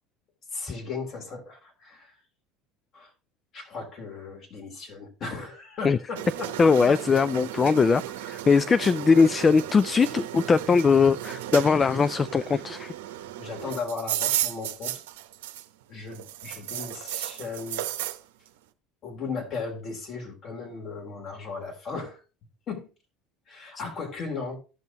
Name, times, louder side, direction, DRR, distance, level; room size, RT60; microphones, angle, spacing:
voice 1, 0.5-2.2 2.9-3.1 3.5-6.6 6.9-7.0 13.4-15.0 15.9-17.9 19.0-22.2 22.7-22.9 23.5-24.6, left 4 dB, 45° left, 3.1 m, -36 dB
sound 1, 6.2-15.8 16.1-18.2, right 13 dB, 85° right, 0.8 m, -34 dB
voice 2, 6.6-8.0 8.3-12.9, left 5 dB, 25° left, 0.3 m, -20 dB
15.5 x 5.5 x 2.9 m
supercardioid pair, 95°, 0 cm